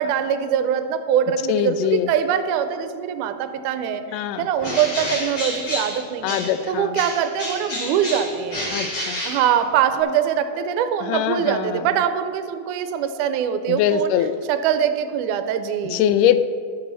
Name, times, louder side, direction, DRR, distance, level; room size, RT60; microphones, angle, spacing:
voice 1, 0.0-6.4 6.7-8.7 9.2-14.1 14.5-16.0, right 8 dB, 80° right, 9 dB, 2.0 m, -23 dB
voice 2, 1.5-2.1 4.1-4.5 6.2-7.0 8.7-9.2 11.0-11.9 13.7-14.4 15.8-16.4, left 11 dB, 80° left, 11 dB, 2.1 m, -22 dB
Bird, 4.6-6.7 6.9-10.0, left 1 dB, 50° left, 4.3 m, -30 dB
17.5 x 6.2 x 4.0 m, 2.2 s
omnidirectional pair, 3.9 m